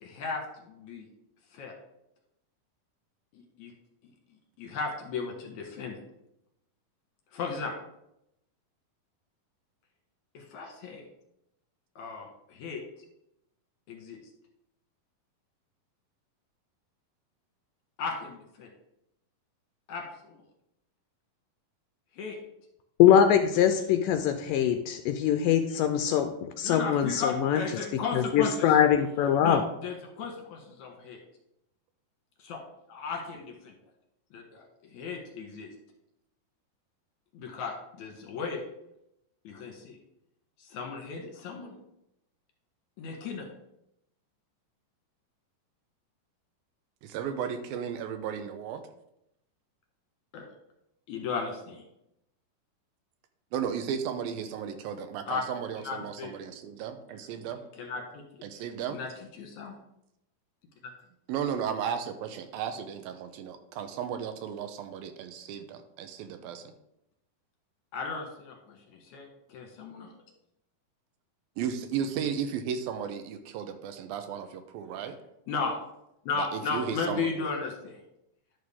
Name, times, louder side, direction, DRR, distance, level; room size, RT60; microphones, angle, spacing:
voice 1, 0.0-1.1 1.5-1.7 3.3-3.7 4.6-6.0 7.3-7.7 10.3-11.1 12.0-12.8 13.9-14.2 18.0-18.7 19.9-20.4 22.1-22.4 26.6-28.8 29.4-31.2 32.4-32.6 32.9-33.7 34.3-35.7 37.3-38.7 39.4-40.0 40.6-41.7 43.0-43.5 50.3-50.5 51.1-51.8 55.3-55.4 55.8-56.3 57.8-58.0 58.9-59.1 59.4-59.8 67.9-70.1 75.5-75.8 76.3-78.0, left 5 dB, 60° left, 1 dB, 2.4 m, -35 dB
voice 2, 23.0-26.3 26.6-27.6 28.1-29.6, left 9 dB, 80° left, 7 dB, 2.0 m, -23 dB
voice 3, 47.0-48.8 53.5-57.6 58.4-59.0 61.3-66.7 71.6-75.2 76.4-77.5, right 8 dB, 80° right, 8 dB, 2.5 m, -34 dB
11.0 x 6.4 x 3.6 m, 0.82 s
omnidirectional pair, 4.2 m